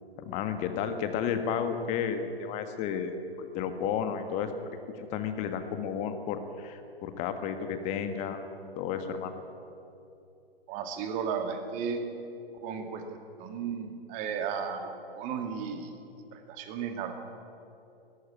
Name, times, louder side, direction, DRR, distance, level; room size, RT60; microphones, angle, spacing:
voice 1, 0.2-4.6 5.0-8.4 8.7-9.3, left 7 dB, 20° left, 8 dB, 1.5 m, -32 dB
voice 2, 10.7-12.0 12.6-13.0 13.4-16.0 16.3-17.1, right 6 dB, 25° right, 5 dB, 2.2 m, -34 dB
18.0 x 14.5 x 9.9 m, 2.7 s
figure-of-eight pair, 125°, 31 cm